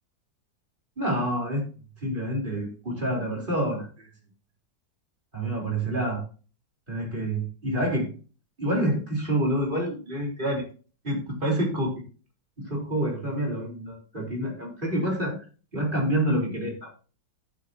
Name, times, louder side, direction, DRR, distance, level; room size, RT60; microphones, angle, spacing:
voice 1, 1.0-1.7 2.0-4.1 5.3-6.2 6.9-8.1 8.6-10.7 11.0-12.0 12.6-15.4 15.7-16.9, right 1 dB, 25° right, -1 dB, 4.1 m, -27 dB
11.0 x 9.8 x 2.8 m, 0.36 s
omnidirectional pair, 2.0 m